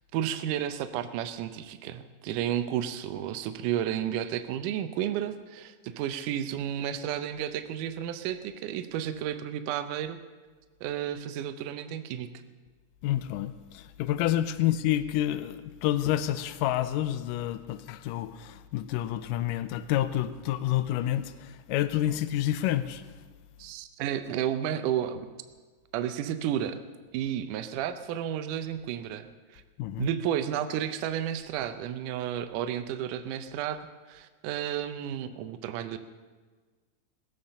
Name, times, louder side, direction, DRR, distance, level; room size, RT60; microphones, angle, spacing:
voice 1, 0.1-10.2 10.8-12.3 23.6-25.3 25.9-26.8 27.1-29.3 29.5-29.6 30.0-33.8 34.1-36.0, right 10 dB, 80° right, 9 dB, 2.2 m, -32 dB
voice 2, 13.0-23.0 29.8-30.1, left 12 dB, 90° left, 13 dB, 2.2 m, -29 dB
19.0 x 8.7 x 6.6 m, 1.4 s
omnidirectional pair, 3.7 m